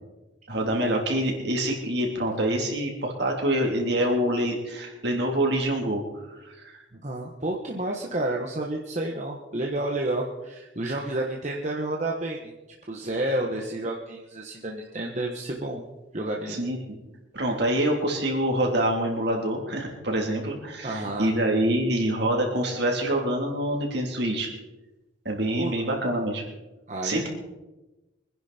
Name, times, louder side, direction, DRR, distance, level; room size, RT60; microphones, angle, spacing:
voice 1, 0.5-6.0 6.5-6.8 16.5-17.0 17.3-24.5 25.3-26.4 27.0-27.3, right 1 dB, 55° right, 0 dB, 3.6 m, -26 dB
voice 2, 6.9-12.5 12.9-15.8 16.1-16.6 20.8-21.3 25.6-25.7 26.9-27.3, right 1 dB, 35° right, 0 dB, 1.4 m, -30 dB
24.5 x 10.5 x 4.4 m, 1.1 s
head